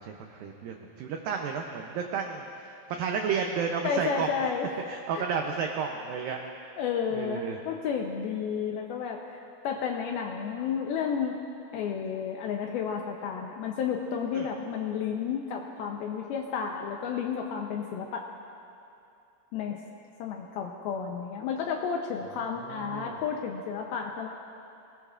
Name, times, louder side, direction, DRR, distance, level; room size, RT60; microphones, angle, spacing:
voice 1, 0.0-4.3 4.9-6.4 7.1-7.6 14.3-14.5 22.4-23.2, right 6 dB, 90° right, 3 dB, 2.0 m, -32 dB
voice 2, 3.8-4.7 5.2-5.3 6.8-9.4 9.6-11.4 11.7-18.3 19.5-19.8 20.2-24.3, left 6 dB, 80° left, 1 dB, 2.3 m, -32 dB
24.0 x 18.5 x 2.5 m, 2.7 s
omnidirectional pair, 5.1 m